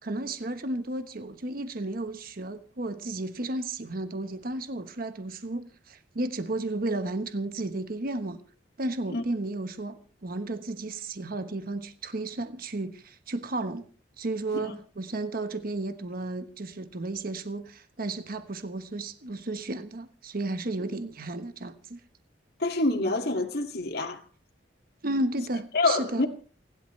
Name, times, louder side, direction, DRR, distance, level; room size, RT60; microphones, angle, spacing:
voice 1, 0.0-8.4 8.8-13.8 14.2-22.0 25.0-26.3, right 2 dB, 55° right, 1.2 m, -33 dB
voice 2, 22.6-24.2 25.7-26.3, left 2 dB, 60° left, 2.2 m, -26 dB
29.5 x 12.0 x 3.2 m
head